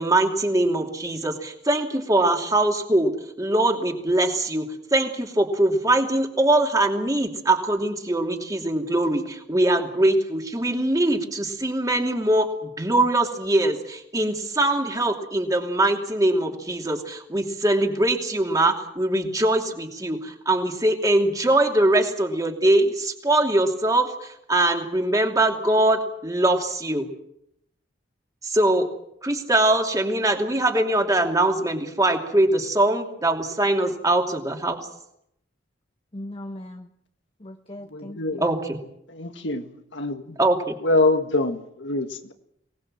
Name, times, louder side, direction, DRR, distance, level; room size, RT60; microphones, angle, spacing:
voice 1, 0.0-3.1 3.4-27.1 28.4-28.9 29.2-34.8 38.4-38.8 40.4-40.8, right 1 dB, 20° right, 3 dB, 2.7 m, -22 dB
voice 2, 36.1-36.9 37.4-38.4, left 1 dB, 30° left, 5 dB, 1.0 m, -38 dB
voice 3, 37.9-38.4 39.1-39.7 39.9-40.4 40.8-42.3, left 2 dB, 85° left, 7 dB, 1.9 m, -24 dB
23.5 x 19.0 x 7.6 m, 0.77 s
head